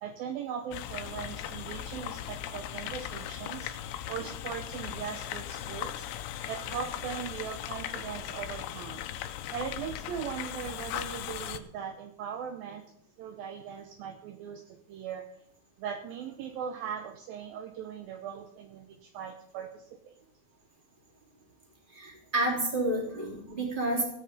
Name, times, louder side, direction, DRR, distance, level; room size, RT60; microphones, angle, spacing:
voice 1, 0.0-6.1 6.5-9.0 9.5-12.9 13.2-15.3 15.8-20.2, right 8 dB, 75° right, 6 dB, 2.4 m, -39 dB
sound 1, 0.7-11.6, left 11 dB, 80° left, 2.7 m, -38 dB
voice 2, 21.9-24.0, right 1 dB, 15° right, -1 dB, 3.2 m, -30 dB
16.5 x 9.0 x 5.3 m, 0.72 s
omnidirectional pair, 4.6 m